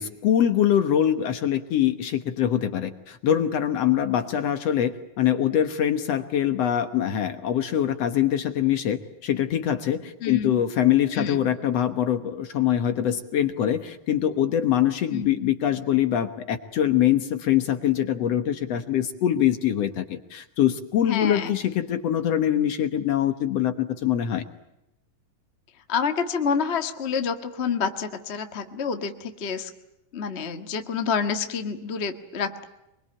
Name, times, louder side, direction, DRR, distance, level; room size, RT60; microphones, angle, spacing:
voice 1, 0.0-24.4, left 10 dB, 60° left, 9 dB, 2.0 m, -23 dB
voice 2, 10.2-10.6 11.2-11.4 15.1-15.3 21.1-21.5 25.9-29.7 30.1-32.6, left 6 dB, 40° left, 7 dB, 0.9 m, -28 dB
24.5 x 23.0 x 8.9 m, 0.88 s
omnidirectional pair, 3.9 m